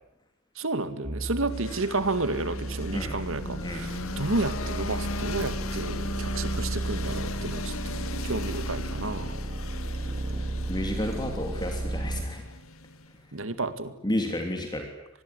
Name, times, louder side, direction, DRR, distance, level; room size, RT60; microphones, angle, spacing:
voice 1, 0.6-9.4 13.3-14.0, right 2 dB, 65° right, 11 dB, 2.2 m, -31 dB
sound 1, 1.0-12.2, right 2 dB, 35° right, 3.8 m, -34 dB
sound 2, 1.5-13.3, left 3 dB, 75° left, 2.0 m, -38 dB
voice 2, 10.7-12.4 14.0-14.9, left 1 dB, 20° left, 4 dB, 3.1 m, -31 dB
26.0 x 20.0 x 9.8 m, 0.84 s
head